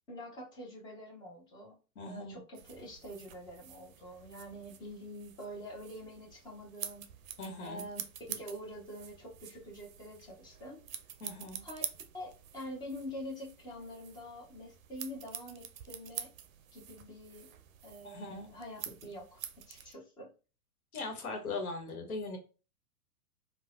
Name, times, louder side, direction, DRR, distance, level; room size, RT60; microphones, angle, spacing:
voice 1, 0.1-1.8 2.0-7.1 7.6-8.0 8.3-10.8 11.6-11.8 12.1-16.3 16.7-17.5 17.8-19.4 19.7-20.3, equal, 10° left, -1 dB, 0.4 m, -46 dB
voice 2, 1.9-2.4 7.4-7.8 11.2-11.7 18.0-18.5 20.9-22.4, left 3 dB, 70° left, 4 dB, 1.1 m, -40 dB
sound 1, 2.5-19.9, right 9 dB, 60° right, 0.5 m, -47 dB
3.1 x 2.1 x 2.4 m, 0.33 s
figure-of-eight pair, 105°, 45 cm